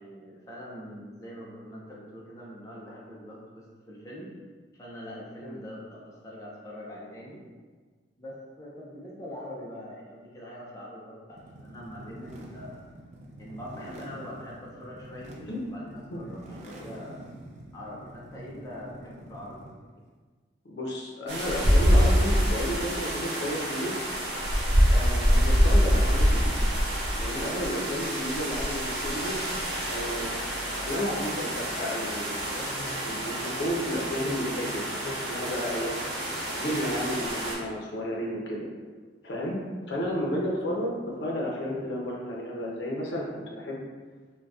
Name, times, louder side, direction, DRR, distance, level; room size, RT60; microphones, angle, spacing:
voice 1, 0.0-4.3 4.7-7.4 8.2-12.9 13.4-17.2 17.7-19.7, left 1 dB, 20° left, -6 dB, 0.4 m, -43 dB
sound 1, 11.3-19.9, right 1 dB, 40° right, 0.4 m, -46 dB
voice 2, 20.6-23.9 24.9-26.5 27.2-29.5 29.9-30.3 30.8-36.1 36.3-38.7 39.2-43.8, equal, 70° left, -3 dB, 0.6 m, -32 dB
sound 2, 21.3-37.6, equal, 80° right, 0.9 m, -26 dB
3.8 x 2.2 x 2.3 m, 1.4 s
head